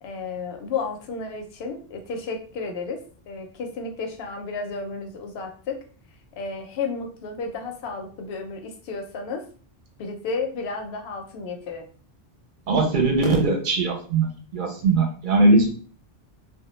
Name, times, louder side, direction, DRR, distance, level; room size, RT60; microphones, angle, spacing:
voice 1, 0.0-3.0 3.3-5.8 6.4-9.4 10.0-11.8, left 4 dB, 80° left, 4 dB, 0.8 m, -32 dB
voice 2, 12.7-15.7, right 2 dB, 60° right, 2 dB, 0.6 m, -20 dB
2.1 x 2.0 x 2.9 m, 0.42 s
omnidirectional pair, 1.0 m